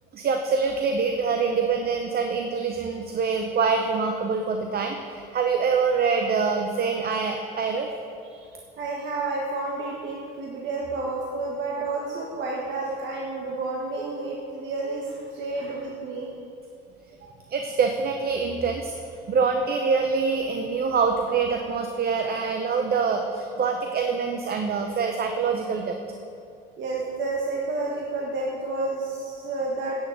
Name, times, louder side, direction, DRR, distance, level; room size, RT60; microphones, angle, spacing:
voice 1, 0.1-7.9 17.5-18.9 19.3-26.0, right 5 dB, 50° right, 4 dB, 0.8 m, -25 dB
voice 2, 8.8-16.3 17.2-17.3 26.8-29.9, right 3 dB, 65° right, -3 dB, 1.5 m, -30 dB
10.5 x 6.4 x 7.6 m, 2.5 s
supercardioid pair, 85°, 21 cm